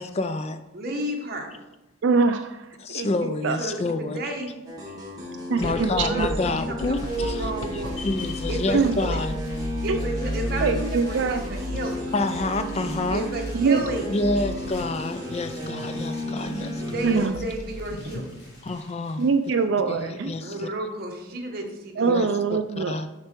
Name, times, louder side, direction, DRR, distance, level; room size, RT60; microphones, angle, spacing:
voice 1, 0.0-0.6 2.8-4.2 5.6-7.5 7.7-9.3 12.1-13.3 14.1-16.8 18.6-19.3 19.9-20.7 22.1-23.2, left 2 dB, 30° left, 10 dB, 0.3 m, -28 dB
voice 2, 0.7-1.6 3.6-4.6 5.6-8.1 8.5-9.2 9.8-12.0 13.1-14.1 16.8-18.5 20.3-22.2, right 1 dB, 45° right, 1 dB, 1.3 m, -32 dB
voice 3, 2.0-2.7 2.9-3.1 3.4-3.6 5.5-6.3 8.7-9.0 9.9-10.0 10.6-11.4 13.5-13.8 17.0-17.4 19.2-20.3 22.0-23.0, right 4 dB, 65° right, 8 dB, 0.4 m, -23 dB
sound 1, 4.7-17.3, equal, 20° right, 1.5 m, -34 dB
sound 2, 5.6-18.7, left 1 dB, 80° left, 0.9 m, -35 dB
sound 3, 6.9-19.6, left 1 dB, 55° left, 3.2 m, -50 dB
6.7 x 6.7 x 4.5 m, 0.99 s
head